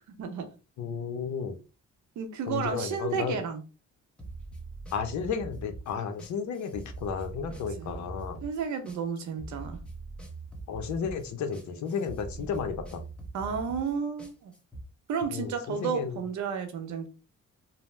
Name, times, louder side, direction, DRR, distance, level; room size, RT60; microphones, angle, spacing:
voice 1, 0.2-0.5 2.2-3.6 7.8-7.9 8.4-9.8 13.3-14.5 15.1-17.1, right 6 dB, 70° right, 0.8 m, -32 dB
voice 2, 0.8-1.6 2.5-3.4 4.9-8.4 10.7-13.0 15.3-16.2, left 6 dB, 70° left, 0.7 m, -33 dB
sound 1, 4.2-14.8, right 2 dB, 5° left, 0.8 m, -43 dB
2.7 x 2.1 x 3.2 m
cardioid pair, 90°, 30 cm